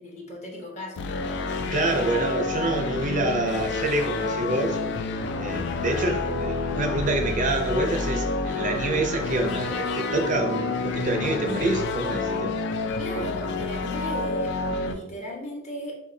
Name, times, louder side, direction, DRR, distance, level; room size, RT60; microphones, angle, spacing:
voice 1, 0.0-1.3 13.0-15.9, left 1 dB, 35° left, -1 dB, 0.9 m, -36 dB
sound 1, 1.0-14.9, left 3 dB, 65° left, 0.4 m, -29 dB
voice 2, 1.7-4.8 5.4-12.6 13.2-13.3, right 2 dB, 40° right, 4 dB, 0.5 m, -27 dB
6.4 x 2.2 x 2.7 m, 0.91 s
head